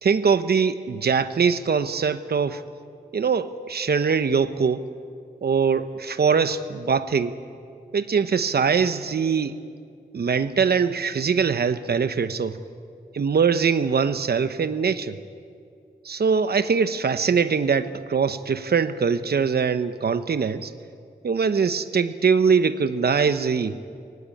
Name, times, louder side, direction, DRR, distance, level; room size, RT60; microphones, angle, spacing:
voice 1, 0.0-2.6 3.1-4.8 5.4-7.4 7.9-9.5 10.1-12.6 13.1-15.2 16.0-20.7 21.2-23.8, right 6 dB, 75° right, 11 dB, 1.0 m, -22 dB
24.0 x 18.0 x 8.6 m, 2.3 s
wide cardioid pair, 130°, 17 cm